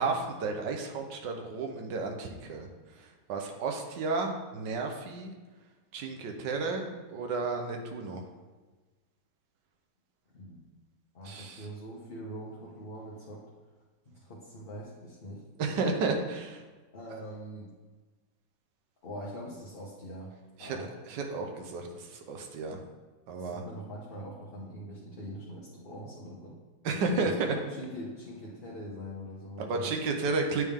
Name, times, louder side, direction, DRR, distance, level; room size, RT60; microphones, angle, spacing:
voice 1, 0.0-2.7 3.3-5.3 5.9-8.2 11.2-11.6 15.6-16.6 20.6-20.8 21.1-22.8 23.3-23.6 26.8-27.5 29.6-30.6, right 3 dB, 85° right, 3 dB, 1.5 m, -32 dB
voice 2, 11.1-13.4 14.0-15.8 16.9-17.7 19.0-20.3 20.6-20.9 23.4-26.6 27.2-29.9, equal, 40° left, -7 dB, 1.0 m, -43 dB
9.3 x 3.5 x 3.6 m, 1.3 s
omnidirectional pair, 1.9 m